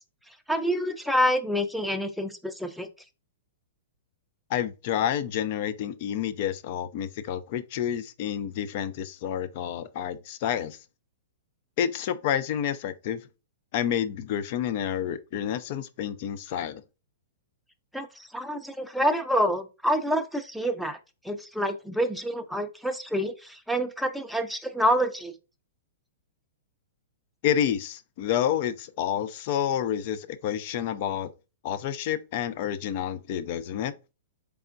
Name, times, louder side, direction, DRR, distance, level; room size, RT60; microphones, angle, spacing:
voice 1, 0.5-2.9 17.9-21.0 21.2-25.3, equal, ahead, 0.5 m, -27 dB
voice 2, 4.5-10.8 11.8-13.2 13.7-16.8 27.4-31.3 31.6-33.9, left 9 dB, 50° left, 0.5 m, -29 dB
4.3 x 3.4 x 2.6 m
hypercardioid pair, 130°, 0 cm